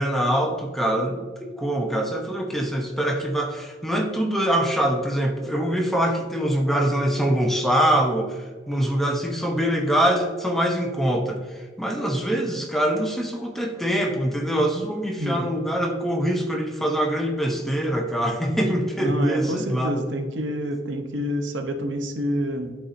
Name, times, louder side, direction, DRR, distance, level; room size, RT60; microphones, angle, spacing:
voice 1, 0.0-20.0, right 1 dB, ahead, 1 dB, 0.6 m, -24 dB
voice 2, 15.2-15.6 19.0-22.8, equal, 85° right, 6 dB, 0.7 m, -28 dB
11.0 x 4.1 x 2.5 m, 1.4 s
head